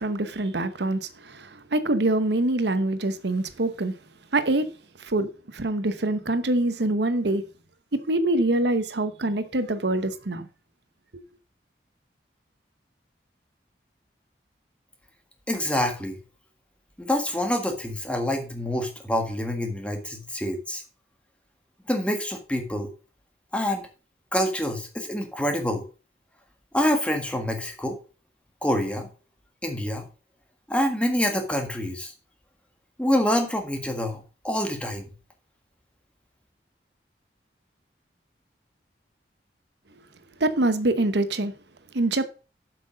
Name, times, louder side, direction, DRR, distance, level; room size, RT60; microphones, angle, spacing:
voice 1, 0.0-3.9 4.3-4.7 5.0-7.4 7.9-10.5 40.4-41.5 41.9-42.2, right 2 dB, 75° right, 1.0 m, -25 dB
voice 2, 15.5-16.2 17.0-20.8 21.9-22.9 23.5-23.9 24.3-25.8 26.7-28.0 28.6-29.1 29.6-30.0 30.7-32.1 33.0-35.0, left 1 dB, 5° left, 1.7 m, -26 dB
7.8 x 6.0 x 6.4 m
head